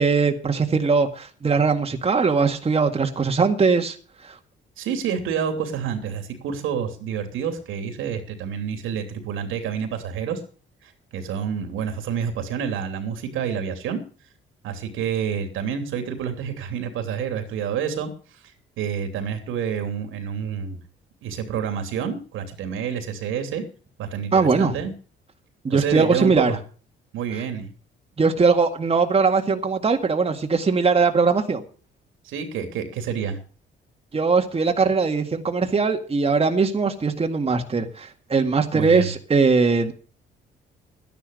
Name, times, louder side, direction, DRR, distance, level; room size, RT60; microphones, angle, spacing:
voice 1, 0.0-4.0 24.3-24.8 25.6-26.5 28.2-31.6 34.1-39.9, right 4 dB, 30° right, 5 dB, 1.9 m, -20 dB
voice 2, 4.8-10.4 10.8-14.0 14.6-18.1 18.8-20.8 21.2-23.6 24.0-24.9 25.7-26.6 27.1-27.7 32.2-33.4 38.7-39.1, right 7 dB, 90° right, 6 dB, 3.0 m, -28 dB
12.5 x 10.5 x 6.5 m, 0.39 s
cardioid pair, 90°, 20 cm